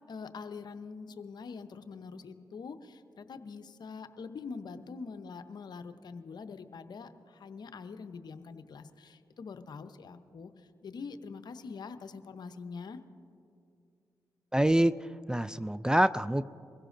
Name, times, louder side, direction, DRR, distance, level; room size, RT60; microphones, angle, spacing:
voice 1, 0.1-13.0, left 5 dB, 60° left, 10 dB, 0.7 m, -44 dB
voice 2, 14.5-14.9 15.3-16.4, right 1 dB, 10° right, 16 dB, 0.3 m, -25 dB
23.0 x 16.0 x 2.6 m, 2.5 s
supercardioid pair, 45°, 8 cm